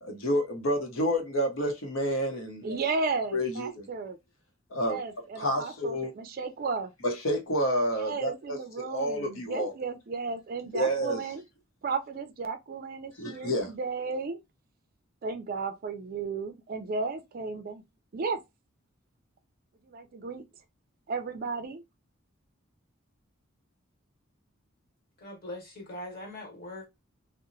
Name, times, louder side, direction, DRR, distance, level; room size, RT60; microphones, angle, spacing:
voice 1, 0.0-2.8 3.3-3.8 4.7-5.0 5.4-6.1 7.0-8.6 8.9-9.7 10.7-11.2 13.2-13.7, equal, 70° left, 0.7 m, -29 dB
voice 2, 2.6-4.2 4.8-6.9 8.0-11.4 11.8-14.4 15.2-17.8 18.1-18.4 19.8-20.4 21.1-21.8, right 4 dB, 45° right, 0.4 m, -34 dB
voice 3, 25.2-26.9, left 1 dB, 50° left, 1.1 m, -41 dB
2.8 x 2.0 x 2.5 m
head